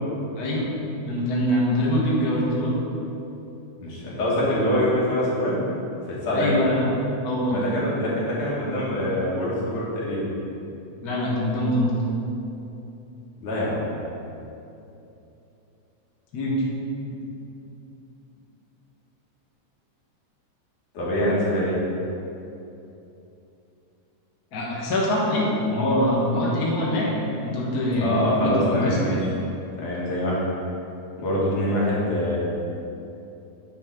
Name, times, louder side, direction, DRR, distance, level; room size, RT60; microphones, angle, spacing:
voice 1, 0.4-0.7 1.0-2.8 6.3-6.9 7.2-7.6 11.0-11.9 16.3-16.6 24.5-27.1 27.4-29.0, left 1 dB, 45° left, -5 dB, 1.4 m, -23 dB
voice 2, 3.8-5.6 6.2-6.6 7.5-10.3 13.4-13.8 20.9-21.8 27.9-29.3 29.8-30.4 31.2-32.4, left 1 dB, 75° left, -6 dB, 3.2 m, -24 dB
9.2 x 4.5 x 6.0 m, 2.9 s
omnidirectional pair, 3.5 m